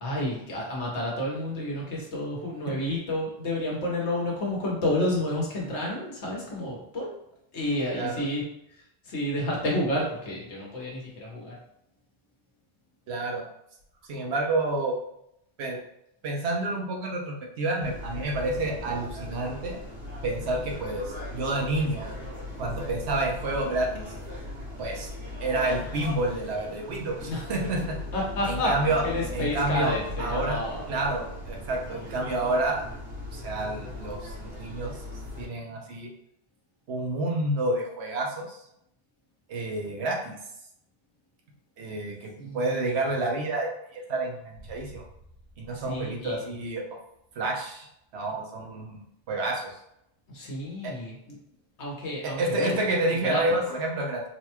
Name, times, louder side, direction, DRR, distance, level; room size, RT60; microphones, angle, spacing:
voice 1, 0.0-7.1 7.5-8.4 8.7-11.6 27.2-27.5 28.1-30.9 42.4-42.7 45.7-46.4 50.3-51.4 51.8-52.9 53.2-53.6, left 1 dB, 80° left, -3 dB, 1.3 m, -30 dB
voice 2, 7.9-8.2 13.1-13.5 14.1-15.0 15.6-15.8 16.2-19.8 20.2-22.1 22.6-24.1 24.8-25.1 25.4-28.0 28.5-29.0 29.3-30.6 30.9-32.8 33.3-34.9 35.4-36.1 36.9-38.6 39.5-40.4 41.8-43.7 43.9-45.0 45.6-46.8 47.4-47.9 48.1-49.0 49.3-49.8 50.8-50.9 52.2-54.2, right 2 dB, 75° right, 0 dB, 1.0 m, -29 dB
sound 1, 17.8-35.4, left 1 dB, 90° right, 1.8 m, -38 dB
4.0 x 2.2 x 2.8 m, 0.77 s
omnidirectional pair, 1.1 m